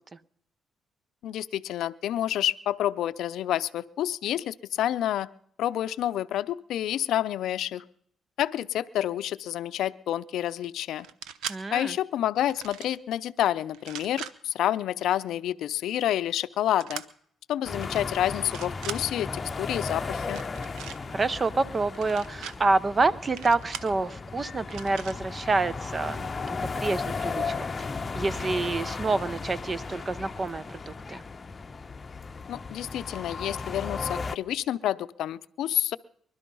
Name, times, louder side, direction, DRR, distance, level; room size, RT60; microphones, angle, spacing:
voice 1, 1.2-5.3 5.6-7.8 8.4-11.1 11.7-17.0 17.5-20.4 32.5-36.0, left 12 dB, 80° left, 15 dB, 0.5 m, -29 dB
sound 1, 11.0-11.6 12.4-13.0 13.7-14.3 16.8-17.1 17.8-18.0 18.4-19.0 20.2-21.0 21.9-22.5 23.4-23.9 24.7-25.2, right 8 dB, 85° right, 0.8 m, -39 dB
voice 2, 11.5-11.9 21.1-27.7 28.1-31.2, right 3 dB, 30° right, 17 dB, 0.7 m, -28 dB
sound 2, 17.6-34.4, left 4 dB, 30° left, 0.8 m, -35 dB
21.5 x 12.0 x 5.4 m, 0.67 s
cardioid pair, 90°, 0 cm